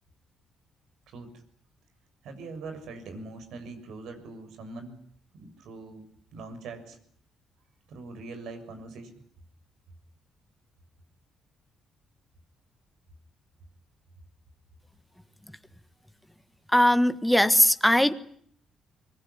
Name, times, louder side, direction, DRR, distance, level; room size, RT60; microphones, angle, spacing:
voice 1, 1.1-1.4 2.2-5.0 5.3-6.1 6.3-7.0 7.9-9.2, right 3 dB, 80° right, 8 dB, 6.9 m, -42 dB
voice 2, 16.7-18.1, left 1 dB, 5° left, 10 dB, 1.6 m, -20 dB
24.0 x 22.0 x 9.8 m, 0.63 s
cardioid pair, 90°, 0 cm